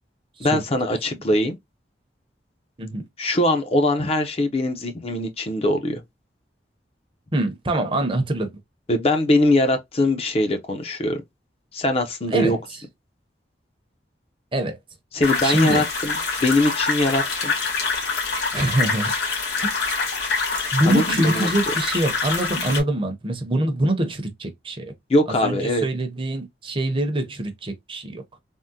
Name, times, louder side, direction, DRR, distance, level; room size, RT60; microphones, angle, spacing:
voice 1, 0.4-1.6 3.2-6.0 8.9-11.2 11.7-12.6 15.1-17.5 20.9-21.5 25.1-25.8, left 1 dB, 35° left, 0.5 m, -22 dB
voice 2, 7.3-8.5 12.3-12.8 14.5-14.8 15.4-15.8 18.5-19.1 19.6-19.9 20.7-24.9 25.3-28.2, right 1 dB, 30° right, 0.7 m, -24 dB
sound 1, 15.2-22.8, left 4 dB, 65° left, 1.6 m, -25 dB
3.5 x 2.0 x 2.7 m
head